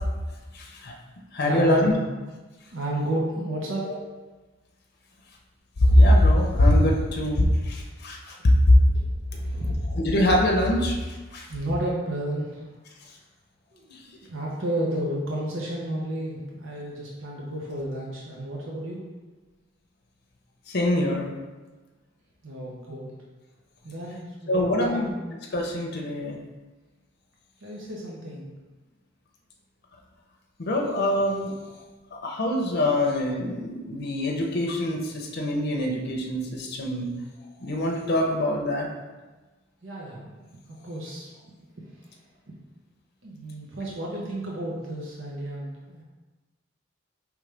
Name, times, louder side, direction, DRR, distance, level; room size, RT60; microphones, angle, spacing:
voice 1, 0.5-0.9 1.3-1.9 3.9-4.0 5.8-8.8 9.9-11.5 20.7-21.3 24.5-25.1 25.5-26.4 30.6-31.5 32.1-37.1 37.6-38.9, left 1 dB, 55° left, 0 dB, 0.6 m, -23 dB
voice 2, 1.4-2.1 2.7-3.9 9.3-9.8 11.5-12.7 13.7-19.0 22.4-23.1 23.8-25.1 27.6-28.5 39.8-40.3 40.7-41.3 43.2-46.0, right 1 dB, 80° right, -3 dB, 0.8 m, -32 dB
4.9 x 3.2 x 3.3 m, 1.2 s
head